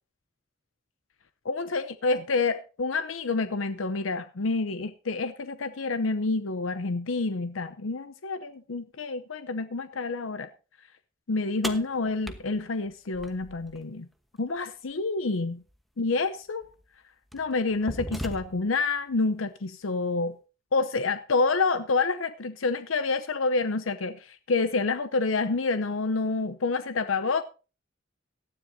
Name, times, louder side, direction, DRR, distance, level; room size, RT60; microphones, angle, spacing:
voice 1, 1.4-10.5 11.3-14.1 14.4-15.6 16.0-16.7 17.3-20.4 20.7-27.4, left 3 dB, 85° left, 0.7 m, -28 dB
sound 1, 11.6-13.8 15.7-15.8 16.6-16.8 17.3-18.8, equal, ahead, 1.1 m, -38 dB
18.0 x 13.0 x 2.7 m
head